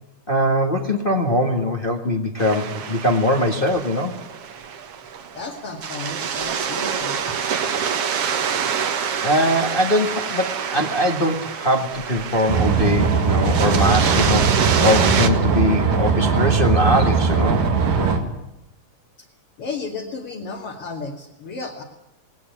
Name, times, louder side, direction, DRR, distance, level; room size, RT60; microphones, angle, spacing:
voice 1, 0.3-4.2 9.2-17.6, left 1 dB, 25° left, 3 dB, 1.4 m, -21 dB
sound 1, 2.4-15.3, right 7 dB, 55° right, 2.2 m, -26 dB
voice 2, 5.3-7.2 19.2-19.3 19.6-21.8, left 4 dB, 45° left, -1 dB, 3.0 m, -33 dB
sound 2, 12.5-18.2, right 5 dB, 90° right, 3.9 m, -19 dB
19.0 x 19.0 x 9.4 m, 0.90 s
omnidirectional pair, 3.7 m